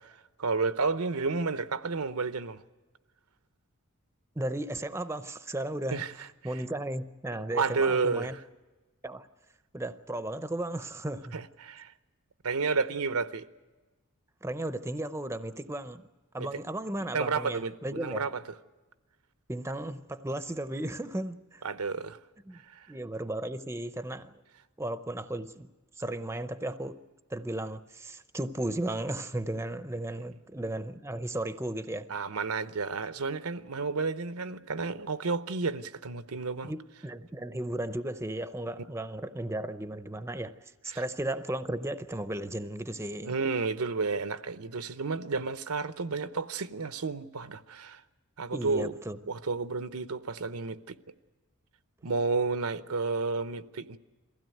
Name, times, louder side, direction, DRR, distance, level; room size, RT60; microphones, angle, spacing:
voice 1, 0.0-2.6 5.9-6.3 7.5-8.4 11.3-11.9 12.4-13.5 16.4-16.6 17.1-18.4 21.6-22.2 22.7-22.9 32.1-36.7 40.9-41.0 43.2-48.0 48.4-48.9 49.3-51.0 52.0-54.0, right 4 dB, 85° right, 0.8 m, -31 dB
voice 2, 4.4-6.0 6.4-8.4 9.0-9.3 9.7-11.4 14.4-16.0 16.3-18.2 19.5-21.6 22.5-22.6 22.9-24.4 24.8-25.7 26.0-27.0 27.3-32.1 36.6-40.5 40.8-43.4 48.5-49.2, right 1 dB, 10° right, 0.6 m, -35 dB
22.5 x 16.0 x 9.2 m
head